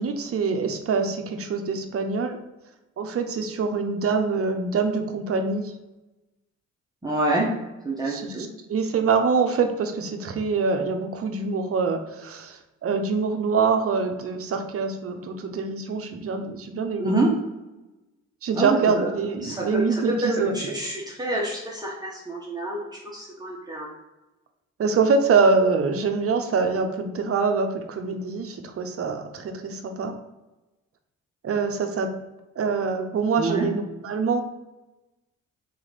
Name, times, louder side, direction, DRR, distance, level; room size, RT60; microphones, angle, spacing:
voice 1, 0.0-2.4 3.0-5.7 8.1-8.3 8.7-17.2 18.4-20.7 24.8-30.1 31.4-32.1 32.6-34.4, right 4 dB, 50° right, 6 dB, 0.7 m, -25 dB
voice 2, 7.0-7.5 7.8-8.5 17.0-17.4 18.5-19.1 19.4-23.9 33.4-33.7, right 2 dB, 15° right, -5 dB, 1.0 m, -27 dB
4.0 x 3.1 x 4.1 m, 1.0 s
cardioid pair, 90°, 30 cm